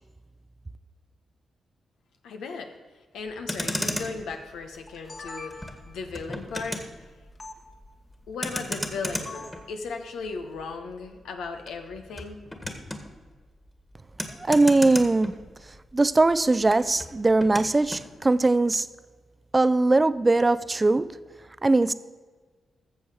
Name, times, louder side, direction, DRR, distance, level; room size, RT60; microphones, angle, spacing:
voice 1, 2.2-2.8 3.1-6.9 8.3-12.4, left 4 dB, 85° left, 4 dB, 1.0 m, -36 dB
Motor vehicle (road), 3.3-15.9 16.2-18.1, left 1 dB, 15° left, 1.7 m, -36 dB
sound 1, 4.7-6.0 7.4-7.6 9.2-9.7, left 3 dB, 45° left, 1.7 m, -42 dB
voice 2, 14.4-15.4 15.9-18.9 19.5-21.1 21.6-21.9, right 2 dB, 30° right, 15 dB, 0.5 m, -20 dB
13.5 x 6.9 x 4.9 m, 1.4 s
supercardioid pair, 50°, 0 cm